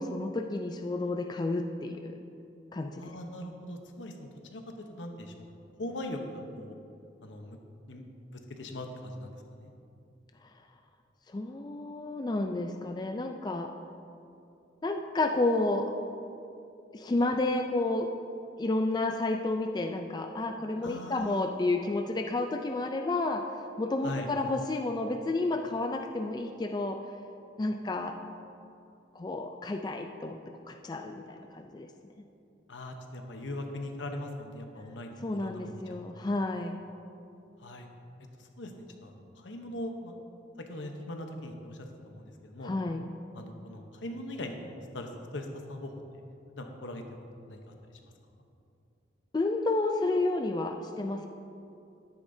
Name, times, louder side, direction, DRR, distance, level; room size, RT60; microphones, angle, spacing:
voice 1, 0.0-2.2 2.7-3.1 11.3-13.7 14.8-15.9 16.9-18.1 18.6-23.5 23.8-27.0 27.6-28.1 29.1-30.4 30.7-31.9 35.2-36.8 42.6-43.1 49.3-51.3, left 2 dB, 20° left, 4 dB, 0.3 m, -31 dB
voice 2, 3.0-4.6 4.9-6.8 7.2-7.6 7.9-9.7 20.8-21.4 24.0-24.3 32.7-36.3 37.6-37.9 38.4-40.2 40.7-42.7 43.3-46.2 46.6-47.2 47.5-47.7 48.0-48.1, left 1 dB, 80° left, 4 dB, 0.9 m, -41 dB
11.5 x 9.9 x 2.7 m, 2.6 s
head